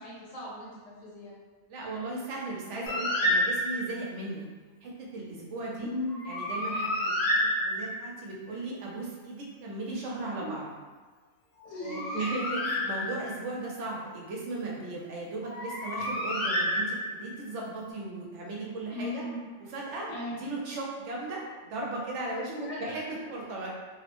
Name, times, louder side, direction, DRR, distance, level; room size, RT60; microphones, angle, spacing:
voice 1, 0.0-1.3 5.8-6.2 10.3-10.7 11.6-12.3 18.9-19.4 20.1-20.4 22.5-23.2, left 1 dB, 35° left, -6 dB, 0.7 m, -37 dB
voice 2, 1.7-4.4 4.8-5.9 6.3-10.6 11.8-19.2 19.6-23.0 23.3-23.7, right 2 dB, 70° right, -3 dB, 0.9 m, -37 dB
Bird, 2.9-4.0 6.1-8.2 11.6-13.5 15.4-17.3, left 1 dB, 80° left, 1.1 m, -30 dB
2.7 x 2.0 x 2.9 m, 1.4 s
omnidirectional pair, 1.3 m